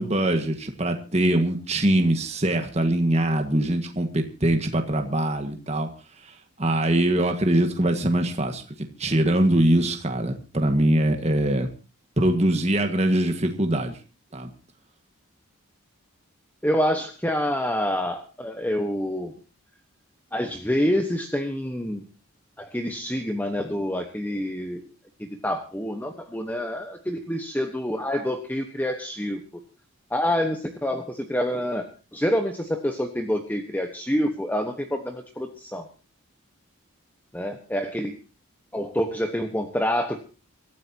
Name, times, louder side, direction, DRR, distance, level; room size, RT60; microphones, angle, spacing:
voice 1, 0.0-5.9 6.6-11.7 12.2-13.9 14.3-14.5, right 1 dB, 30° right, 5 dB, 1.7 m, -23 dB
voice 2, 16.6-19.3 20.3-22.0 22.6-24.9 25.2-29.4 30.1-35.9 37.3-38.2 38.7-40.2, equal, 10° left, 5 dB, 1.2 m, -27 dB
25.5 x 13.5 x 2.9 m, 0.34 s
head